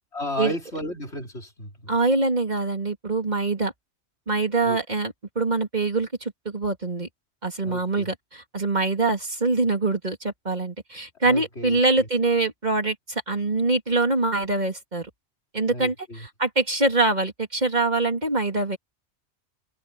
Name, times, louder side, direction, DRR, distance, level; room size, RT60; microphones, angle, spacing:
voice 1, 0.1-1.9 4.6-4.8 7.6-8.1 11.2-12.0 15.7-16.3, left 1 dB, 75° left, 4.8 m, -34 dB
voice 2, 1.9-3.7 4.3-7.1 7.4-15.1 15.5-18.8, right 3 dB, 40° right, 3.6 m, -24 dB
omnidirectional pair, 1.1 m